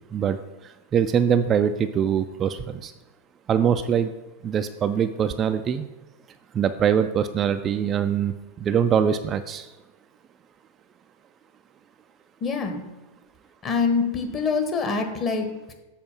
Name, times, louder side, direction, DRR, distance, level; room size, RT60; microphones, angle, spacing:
voice 1, 0.9-2.9 3.5-4.1 4.4-5.9 6.5-8.3 8.6-9.7, right 8 dB, 25° right, 8 dB, 0.3 m, -23 dB
voice 2, 12.4-12.8 13.6-15.7, left 5 dB, 25° left, 4 dB, 1.2 m, -25 dB
7.4 x 4.2 x 6.0 m, 1.1 s
figure-of-eight pair, 90°, 0 cm